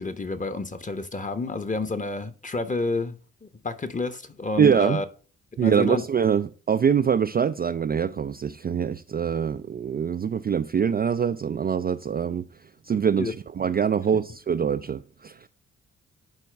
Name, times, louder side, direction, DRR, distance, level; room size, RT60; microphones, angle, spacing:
voice 1, 0.0-5.0 5.6-6.0 13.2-13.3, left 3 dB, 20° left, 1.0 m, -30 dB
voice 2, 4.6-5.0 5.6-12.4 12.8-15.4, right 7 dB, 25° right, 0.4 m, -24 dB
10.5 x 4.6 x 3.4 m
hypercardioid pair, 45°, 35 cm